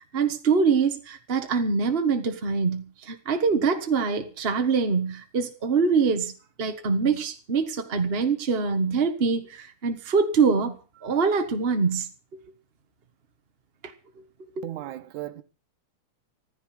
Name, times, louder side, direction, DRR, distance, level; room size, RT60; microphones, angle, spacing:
voice 1, 0.1-6.3 6.6-10.8 11.0-12.1 14.6-14.7, right 5 dB, 55° right, 0.6 m, -24 dB
voice 2, 14.6-15.4, right 14 dB, 80° right, 2.4 m, -36 dB
15.0 x 14.5 x 6.0 m
omnidirectional pair, 3.5 m